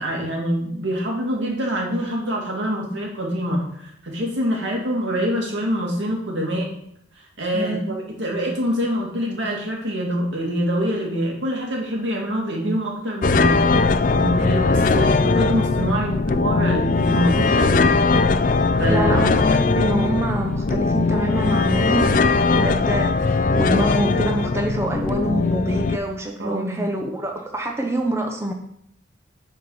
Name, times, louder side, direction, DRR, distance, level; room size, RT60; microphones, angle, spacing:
voice 1, 0.0-6.7 7.4-13.6 14.1-18.0 18.8-19.1 26.4-26.8, equal, 85° right, -1 dB, 2.3 m, -25 dB
voice 2, 7.5-7.9 18.9-28.5, right 1 dB, 15° right, 2 dB, 0.7 m, -25 dB
sound 1, 13.2-26.0, left 3 dB, 45° left, 0.4 m, -19 dB
8.0 x 4.5 x 5.6 m, 0.71 s
head